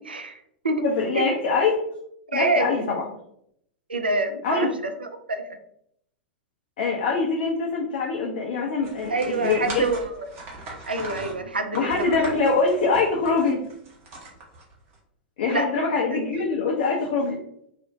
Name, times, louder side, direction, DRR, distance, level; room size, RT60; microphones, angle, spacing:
voice 1, 0.0-0.8 1.1-1.3 2.3-2.7 3.9-5.6 9.1-10.3 10.9-12.4 15.5-15.7 16.1-16.2, right 2 dB, 90° right, 6 dB, 0.3 m, -27 dB
voice 2, 0.8-1.8 2.3-3.0 4.4-4.7 6.8-9.8 11.7-13.6 15.4-17.4, left 4 dB, 60° left, -2 dB, 0.4 m, -24 dB
sound 1, 8.8-15.0, right 2 dB, 40° right, 0.8 m, -40 dB
2.5 x 2.0 x 2.5 m, 0.73 s
figure-of-eight pair, 95°, 5 cm